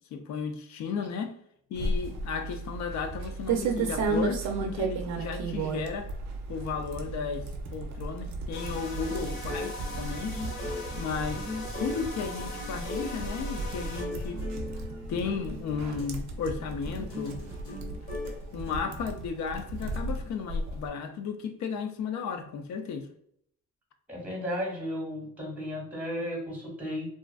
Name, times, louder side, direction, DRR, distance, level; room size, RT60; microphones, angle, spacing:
voice 1, 0.1-1.3 1.7-6.1 6.5-7.5 7.7-10.4 11.0-11.4 11.8-14.4 15.1-17.4 18.5-23.1, left 5 dB, 65° left, 0.4 m, -34 dB
sound 1, 1.8-20.9, right 3 dB, 70° right, 0.5 m, -34 dB
sound 2, 8.5-18.8, left 2 dB, 90° left, 1.3 m, -41 dB
sound 3, 8.5-14.0, left 2 dB, 45° left, 0.8 m, -41 dB
voice 2, 24.1-27.1, equal, 5° right, 0.9 m, -34 dB
2.4 x 2.3 x 2.3 m
cardioid pair, 90°, 30 cm